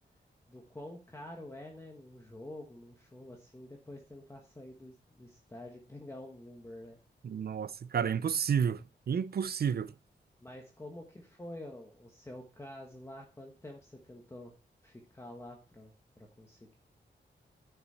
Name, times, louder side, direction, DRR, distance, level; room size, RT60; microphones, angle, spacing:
voice 1, 0.5-7.0 10.4-14.5 14.8-16.7, left 1 dB, 15° left, 1.3 m, -48 dB
voice 2, 7.2-9.9, right 7 dB, 55° right, 0.6 m, -31 dB
10.5 x 6.0 x 4.2 m
wide cardioid pair, 180°, 19 cm